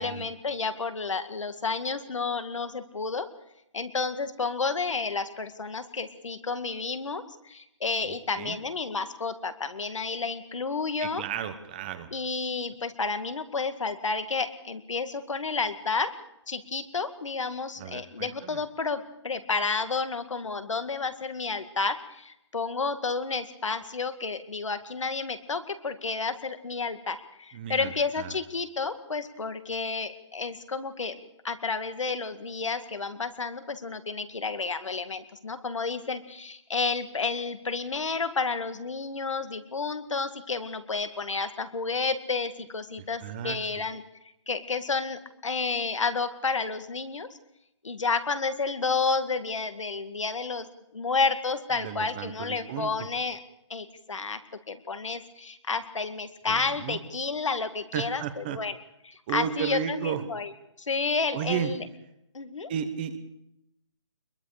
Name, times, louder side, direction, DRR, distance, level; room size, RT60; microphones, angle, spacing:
voice 1, 0.0-3.3 3.7-11.2 12.1-16.1 16.5-31.2 31.4-44.0 44.5-47.3 47.8-50.7 50.9-53.4 53.7-54.4 54.7-58.7 59.0-60.5 60.8-61.8 62.3-62.7, left 4 dB, 80° left, 9 dB, 2.1 m, -31 dB
voice 2, 8.0-8.6 11.0-12.1 17.8-18.6 27.5-28.4 43.2-43.6 51.8-52.9 56.5-57.0 57.9-58.6 59.3-60.2 61.3-61.7 62.7-63.2, right 9 dB, 20° right, 10 dB, 1.0 m, -33 dB
23.5 x 22.0 x 5.1 m, 0.81 s
hypercardioid pair, 170°, 16 cm